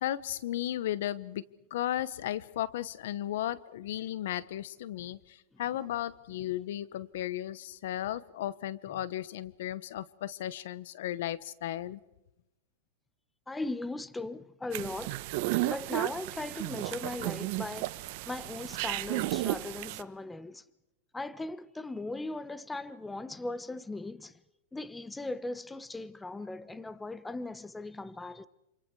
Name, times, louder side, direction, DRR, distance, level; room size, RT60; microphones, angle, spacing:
voice 1, 0.0-1.4 1.7-12.0, left 12 dB, 70° left, 1.1 m, -35 dB
voice 2, 13.5-15.2 15.6-20.6 21.1-24.4 24.7-28.5, left 2 dB, 10° left, 1.0 m, -38 dB
sound 1, 14.7-20.0, right 18 dB, 55° right, 1.1 m, -33 dB
27.5 x 27.5 x 4.7 m
hypercardioid pair, 130°, 0 cm